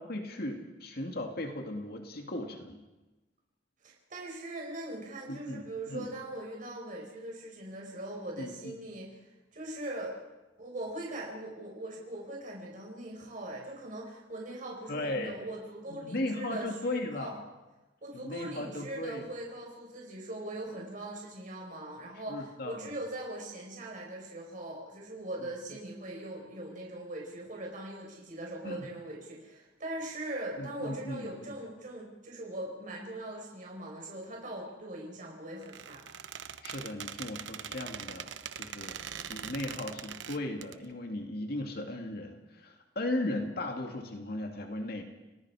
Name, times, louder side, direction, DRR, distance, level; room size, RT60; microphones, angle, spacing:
voice 1, 0.0-2.8 5.3-6.1 8.4-8.7 14.9-15.3 15.9-17.4 18.1-19.3 22.3-22.9 28.6-28.9 30.6-31.5 36.6-39.0 39.3-45.0, left 1 dB, 55° left, 3 dB, 2.3 m, -37 dB
voice 2, 3.8-9.1 9.5-10.2 10.6-17.3 18.0-36.0, right 1 dB, 45° right, -1 dB, 5.2 m, -41 dB
Squeak, 35.6-40.7, right 8 dB, 85° right, 0.9 m, -42 dB
30.0 x 19.0 x 4.9 m, 1.1 s
head